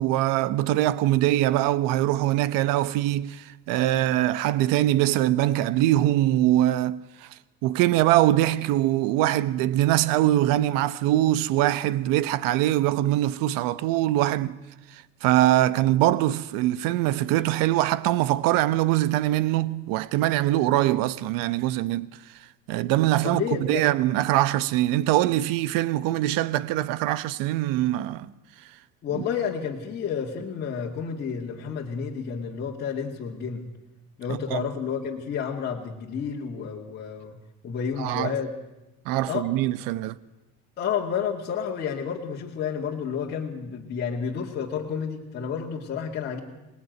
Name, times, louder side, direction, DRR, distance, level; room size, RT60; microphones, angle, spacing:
voice 1, 0.0-7.3 7.6-14.6 14.9-22.1 22.7-23.4 23.7-28.3 29.1-29.2 34.3-34.7 38.0-38.4 39.1-40.2, right 14 dB, 80° right, 1.1 m, -23 dB
voice 2, 23.2-23.8 29.0-33.7 34.2-37.4 37.6-38.5 39.3-39.5 40.8-46.4, left 7 dB, 30° left, 2.2 m, -30 dB
26.0 x 20.0 x 9.4 m
cardioid pair, 180°, 33 cm